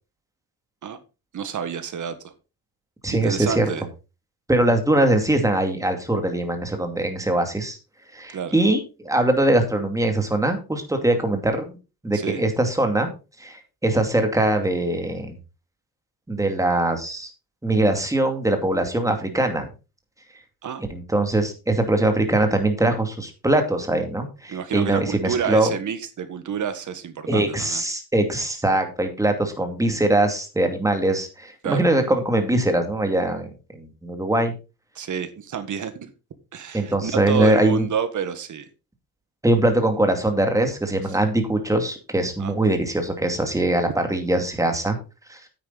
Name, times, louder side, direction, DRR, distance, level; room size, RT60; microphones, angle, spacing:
voice 1, 1.3-2.3 3.1-3.8 8.3-8.6 12.1-12.4 20.6-20.8 24.5-27.8 31.6-31.8 34.9-36.1 36.5-38.7 42.4-42.5, right 7 dB, 45° right, 11 dB, 1.6 m, -29 dB
voice 2, 3.0-3.7 4.5-7.8 8.1-11.8 12.0-13.1 13.4-15.4 16.3-17.3 17.6-19.7 20.9-25.7 27.3-33.5 33.7-34.5 36.7-37.9 39.4-45.0 45.3-45.4, right 1 dB, 10° right, 5 dB, 2.4 m, -22 dB
9.7 x 8.7 x 4.0 m, 0.31 s
cardioid pair, 130°, 40 cm